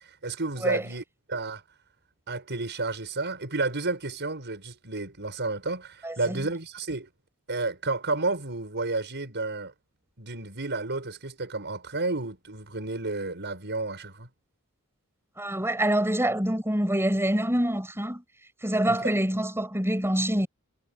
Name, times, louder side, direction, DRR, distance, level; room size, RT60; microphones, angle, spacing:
voice 1, 0.2-1.6 2.3-7.1 7.5-9.7 10.2-14.3 18.9-19.1, right 3 dB, 50° right, 6.0 m, -31 dB
voice 2, 6.0-6.4 15.4-18.2 18.6-20.5, right 1 dB, 10° right, 7.3 m, -26 dB
head